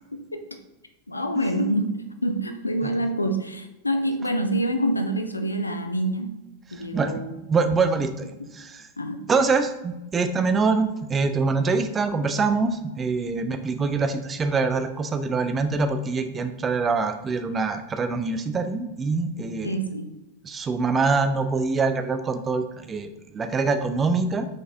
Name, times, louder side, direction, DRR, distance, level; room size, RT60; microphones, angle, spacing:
voice 1, 0.1-0.5 1.1-6.4 6.7-7.3 9.0-9.3 19.6-20.1, right 1 dB, 80° left, 7 dB, 0.4 m, -26 dB
voice 2, 6.7-7.1 7.5-8.9 9.3-19.7 20.4-24.5, right 4 dB, 20° right, 9 dB, 0.4 m, -24 dB
5.1 x 3.9 x 2.6 m, 0.98 s
figure-of-eight pair, 90°, 0 cm